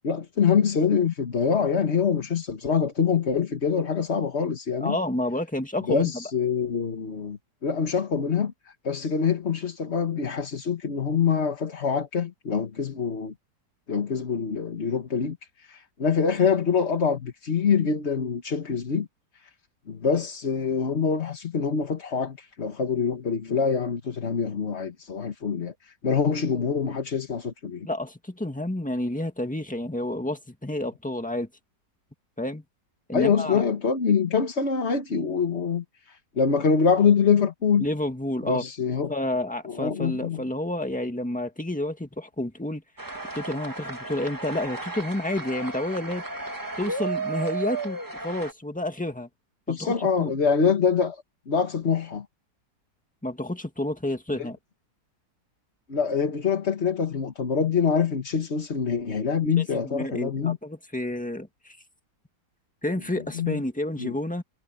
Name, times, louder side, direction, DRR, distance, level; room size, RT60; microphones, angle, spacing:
voice 1, 0.0-5.0 5.9-8.5 8.8-13.3 13.9-19.1 19.9-27.9 33.1-37.9 38.5-39.1 39.7-40.4 49.7-52.2 54.4-54.5 55.9-60.6 63.3-63.6 64.0-64.1, left 6 dB, 40° left, 1.6 m, -25 dB
voice 2, 4.8-6.2 27.8-31.5 32.4-32.6 33.1-33.6 37.8-38.6 39.1-42.8 43.3-46.2 46.8-49.3 49.7-50.3 53.2-54.6 59.8-61.8 62.8-64.4, left 1 dB, 5° left, 1.6 m, -30 dB
sound 1, 43.0-48.5, right 3 dB, 10° right, 1.4 m, -34 dB
omnidirectional pair, 1.9 m